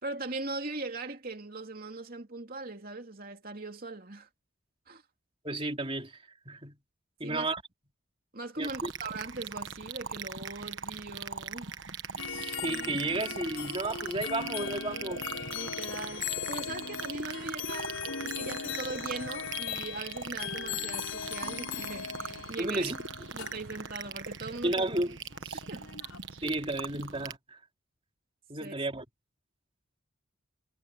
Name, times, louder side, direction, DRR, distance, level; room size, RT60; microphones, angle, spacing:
voice 1, 0.0-4.3 4.9-5.0 7.2-7.5 8.3-11.8 15.5-18.0 18.2-22.9 23.3-24.9 25.7-25.9 26.4-26.6 28.6-28.7, right 3 dB, 45° right, 3.0 m, -40 dB
voice 2, 5.4-6.8 7.2-7.6 8.6-8.9 12.3-15.3 22.6-23.0 24.6-25.2 25.4-25.6 26.4-27.6 28.5-29.0, right 2 dB, 25° right, 3.7 m, -33 dB
sound 1, 8.6-27.3, right 6 dB, 60° right, 1.3 m, -41 dB
sound 2, 12.2-26.2, left 7 dB, 80° left, 5.9 m, -39 dB
head